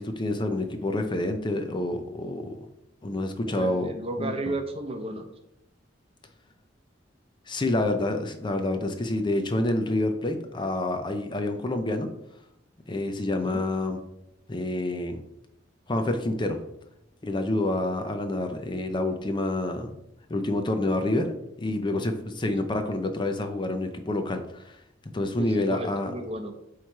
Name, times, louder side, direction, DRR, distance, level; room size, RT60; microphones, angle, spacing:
voice 1, 0.0-2.6 3.0-3.9 4.2-4.3 7.5-12.1 12.9-14.0 14.5-15.2 15.9-16.6 17.2-19.9 20.3-24.8 25.1-26.1, left 2 dB, 25° left, 7 dB, 0.6 m, -28 dB
voice 2, 3.5-5.3 13.3-13.6 22.4-22.7 25.4-26.7, right 2 dB, 30° right, 6 dB, 0.8 m, -34 dB
8.2 x 3.1 x 4.6 m, 0.82 s
head